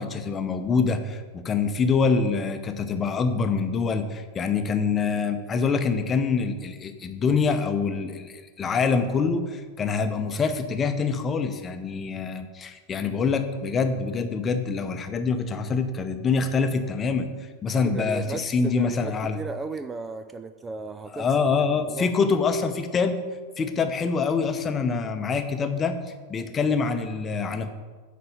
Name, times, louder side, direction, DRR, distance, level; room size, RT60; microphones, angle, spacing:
voice 1, 0.0-17.3 17.6-19.4 21.1-23.2 23.6-26.0 26.3-27.7, left 5 dB, 20° left, 8 dB, 0.8 m, -25 dB
voice 2, 17.8-21.4 21.9-22.3, right 3 dB, 15° right, 11 dB, 0.4 m, -35 dB
9.7 x 4.3 x 6.9 m, 1.4 s
figure-of-eight pair, 90°, 0 cm